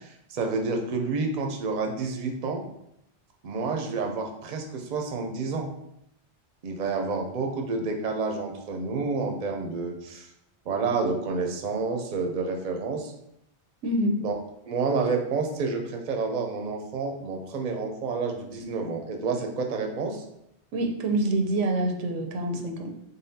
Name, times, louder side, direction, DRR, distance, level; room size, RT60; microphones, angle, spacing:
voice 1, 0.0-2.6 3.4-5.7 6.6-10.3 10.7-13.1 14.2-14.4 14.7-20.2, right 4 dB, 50° right, 3 dB, 0.6 m, -29 dB
voice 2, 13.8-14.2 20.7-22.9, right 1 dB, 85° right, 4 dB, 1.0 m, -26 dB
3.9 x 3.5 x 2.7 m, 0.79 s
omnidirectional pair, 1.2 m